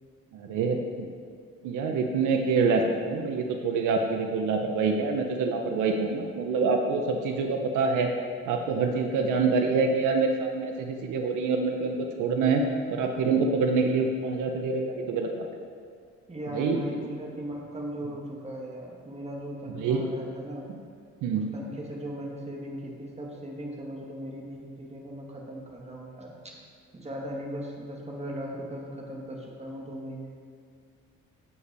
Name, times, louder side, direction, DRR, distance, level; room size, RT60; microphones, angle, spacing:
voice 1, 0.3-1.1 1.6-8.1 8.5-12.6 12.9-15.5 16.5-16.8 19.8-20.1 21.2-21.5, right 4 dB, 85° right, 4 dB, 0.8 m, -26 dB
voice 2, 16.3-20.7 21.3-26.3 26.9-30.4, equal, 20° right, -2 dB, 1.7 m, -38 dB
8.4 x 5.5 x 4.7 m, 2.1 s
cardioid pair, 90°, 30 cm